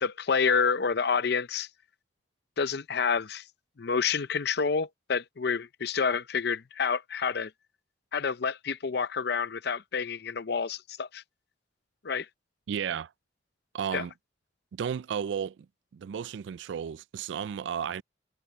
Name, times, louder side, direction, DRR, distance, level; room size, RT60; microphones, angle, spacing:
voice 1, 0.0-1.7 2.6-3.4 3.8-7.5 8.1-11.2 12.0-12.3 13.9-14.0, left 5 dB, 55° left, 0.6 m, -28 dB
voice 2, 12.7-13.1 13.7-14.1 14.7-15.7 15.9-18.0, right 8 dB, 70° right, 0.3 m, -33 dB
head